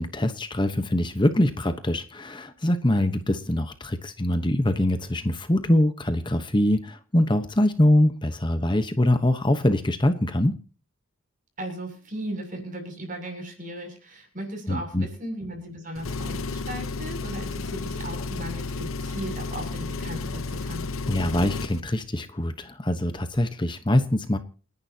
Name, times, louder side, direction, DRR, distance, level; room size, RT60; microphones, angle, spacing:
voice 1, 0.0-10.6 14.7-15.1 21.1-24.4, left 1 dB, 25° left, 8 dB, 1.0 m, -23 dB
voice 2, 11.6-20.8, right 1 dB, 40° right, 4 dB, 7.2 m, -36 dB
Engine, 16.0-21.8, left 3 dB, 85° left, 1.0 m, -32 dB
29.5 x 11.0 x 2.9 m, 0.39 s
head